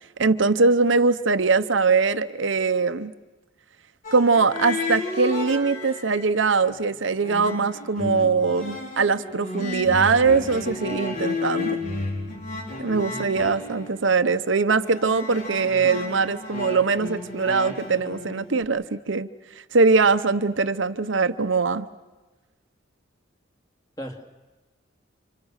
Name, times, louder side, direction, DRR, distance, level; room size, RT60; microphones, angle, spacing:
voice 1, 0.2-3.1 4.1-11.8 12.8-19.3 19.7-21.9, right 4 dB, 70° right, 10 dB, 0.9 m, -22 dB
sound 1, 4.0-6.3 6.6-18.6, left 2 dB, 40° left, 4.1 m, -33 dB
voice 2, 12.9-13.3 24.0-24.3, equal, 20° left, 3 dB, 2.9 m, -37 dB
30.0 x 27.0 x 6.5 m, 1.2 s
head